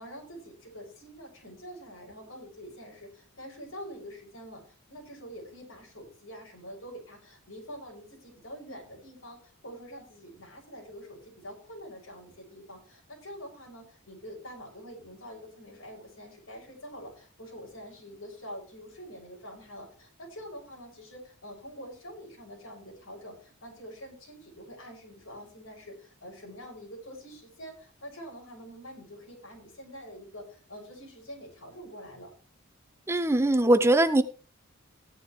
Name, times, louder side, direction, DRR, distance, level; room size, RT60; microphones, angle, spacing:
voice 1, 0.0-32.3, equal, 75° left, 0 dB, 6.4 m, -46 dB
voice 2, 33.1-34.2, right 1 dB, 15° right, 9 dB, 0.6 m, -21 dB
15.5 x 10.5 x 3.2 m, 0.37 s
head